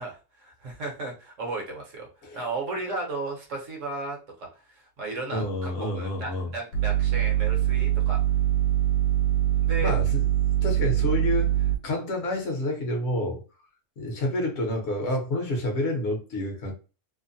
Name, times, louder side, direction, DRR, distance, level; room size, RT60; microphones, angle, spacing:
voice 1, 0.0-2.1 2.3-8.2 9.6-9.9, right 2 dB, 60° right, 0 dB, 1.0 m, -35 dB
voice 2, 5.3-6.5 9.8-10.2 10.6-11.5 11.8-13.4 14.0-16.7, left 1 dB, 50° left, 1 dB, 0.9 m, -28 dB
sound 1, 6.7-11.8, right 12 dB, 80° left, 1.1 m, -23 dB
2.8 x 2.1 x 2.6 m, 0.34 s
omnidirectional pair, 1.7 m